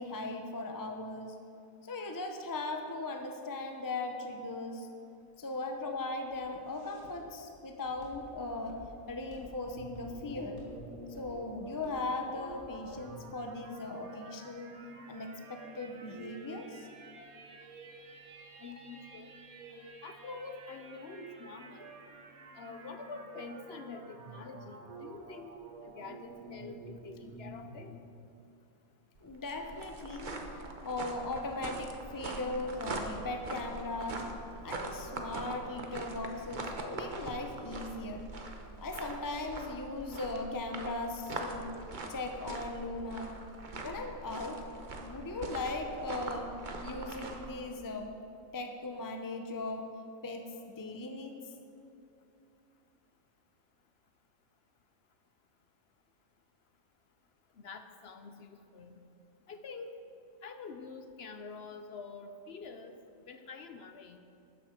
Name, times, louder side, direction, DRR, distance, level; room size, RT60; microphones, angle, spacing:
voice 1, 0.0-1.4 1.8-4.9 5.4-8.8 9.1-10.6 11.2-14.7 15.1-16.9 29.2-30.4 30.8-34.3 34.6-38.2 38.8-41.7 42.1-43.4 43.8-44.6 45.0-46.5 46.8-48.2 48.5-49.9 50.2-51.4, left 2 dB, 30° left, 4 dB, 0.3 m, -38 dB
Walk footsteps, 5.3-13.2, equal, 80° left, 2.6 m, -55 dB
sound 1, 9.7-27.8, right 3 dB, 90° right, 1.6 m, -50 dB
voice 2, 18.6-19.3 19.7-21.9 22.5-25.5 25.8-28.0 57.6-59.0 59.5-60.0 60.4-63.0 63.3-64.2, left 4 dB, 55° left, 7 dB, 0.8 m, -46 dB
sound 2, 29.2-47.5, right 2 dB, 40° right, 1.0 m, -42 dB
13.0 x 10.0 x 4.4 m, 2.8 s
omnidirectional pair, 1.5 m